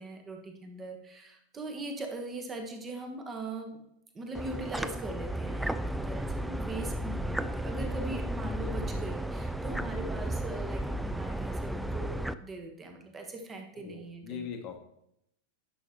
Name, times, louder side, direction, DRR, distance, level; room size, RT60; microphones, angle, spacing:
voice 1, 0.0-3.8 4.1-14.5, right 2 dB, 20° right, 4 dB, 1.3 m, -41 dB
sound 1, 4.3-12.3, right 1 dB, ahead, 0.3 m, -34 dB
voice 2, 13.7-14.8, left 7 dB, 35° left, 6 dB, 1.1 m, -41 dB
9.9 x 6.2 x 3.0 m, 0.76 s
figure-of-eight pair, 90°, 0 cm